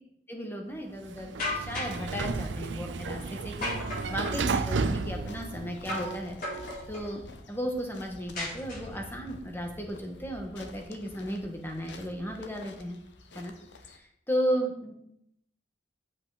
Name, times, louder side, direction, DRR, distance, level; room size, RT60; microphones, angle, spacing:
voice 1, 0.3-3.7 4.1-6.3 6.9-13.0 13.3-13.5 13.8-15.0, equal, 15° left, 2 dB, 1.5 m, -34 dB
Sliding door, 1.0-6.2, right 4 dB, 90° right, 0.6 m, -33 dB
sound 1, 1.4-2.1 3.6-4.5 5.9-6.2 6.4-7.1 8.4-9.1, left 1 dB, 55° left, 4.2 m, -35 dB
sound 2, 4.9-14.0, left 2 dB, 80° left, 1.0 m, -49 dB
8.4 x 7.9 x 4.1 m, 0.74 s
head